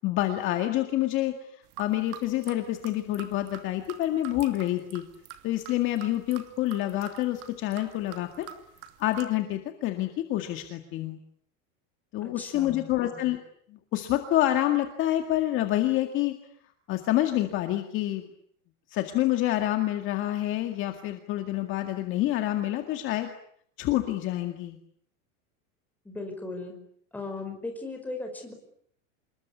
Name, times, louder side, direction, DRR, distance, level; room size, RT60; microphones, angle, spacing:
voice 1, 0.0-5.0 5.4-8.5 9.0-11.2 12.1-13.4 13.7-16.4 16.9-18.3 18.9-23.3 23.8-24.8, left 14 dB, 30° left, 6 dB, 2.1 m, -27 dB
sound 1, 1.6-9.2, right 10 dB, 40° right, 2.9 m, -46 dB
voice 2, 12.2-12.9 26.1-26.8 27.1-28.5, left 3 dB, 5° left, 3 dB, 5.2 m, -37 dB
27.0 x 22.0 x 9.7 m, 0.66 s
supercardioid pair, 175°, 39 cm